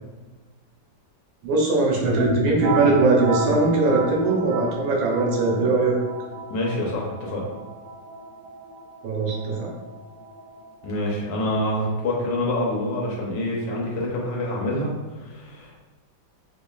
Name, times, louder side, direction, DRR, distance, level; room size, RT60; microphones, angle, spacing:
voice 1, 1.4-5.9 9.0-9.7, right 3 dB, 80° right, -2 dB, 1.6 m, -21 dB
sound 1, 2.0-11.6, right 2 dB, 65° right, 0.8 m, -31 dB
voice 2, 6.5-7.4 10.8-14.9 15.2-15.8, left 1 dB, 70° left, -3 dB, 1.3 m, -26 dB
5.1 x 2.4 x 2.3 m, 1.2 s
omnidirectional pair, 2.1 m